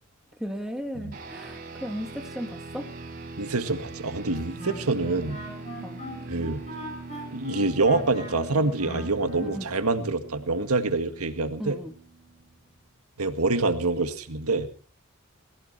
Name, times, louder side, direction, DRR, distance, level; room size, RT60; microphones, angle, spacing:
voice 1, 0.4-2.9 5.8-6.0 9.4-9.7 11.6-11.9, equal, ahead, 3 dB, 1.7 m, -35 dB
sound 1, 1.1-12.8, right 3 dB, 40° right, 4.5 m, -42 dB
voice 2, 3.4-5.4 6.3-6.6 7.3-11.8 13.2-14.7, right 3 dB, 90° right, 8 dB, 1.9 m, -26 dB
Wind instrument woodwind instrument, 4.3-9.6, equal, 30° left, 7.5 m, -40 dB
21.0 x 16.0 x 4.2 m, 0.42 s
head